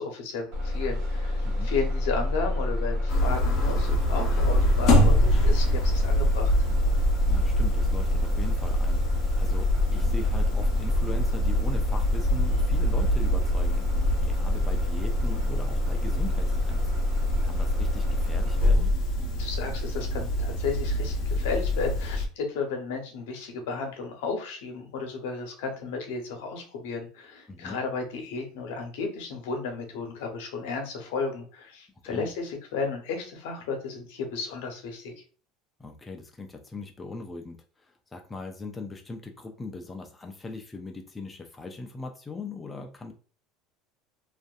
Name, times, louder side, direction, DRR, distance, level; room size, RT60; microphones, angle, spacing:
voice 1, 0.0-6.5 19.4-35.1, left 4 dB, 80° left, 3 dB, 0.8 m, -33 dB
Bus, 0.5-18.7, left 1 dB, 65° right, 1.1 m, -28 dB
sound 1, 3.1-22.3, left 1 dB, 50° left, 0.7 m, -26 dB
voice 2, 7.2-9.0 9.4-13.9 14.2-16.9 17.4-19.0 27.5-27.8 32.0-32.3 35.8-43.1, left 3 dB, 15° left, 3 dB, 0.4 m, -40 dB
2.5 x 2.5 x 2.3 m, 0.39 s
supercardioid pair, 120°, 0 cm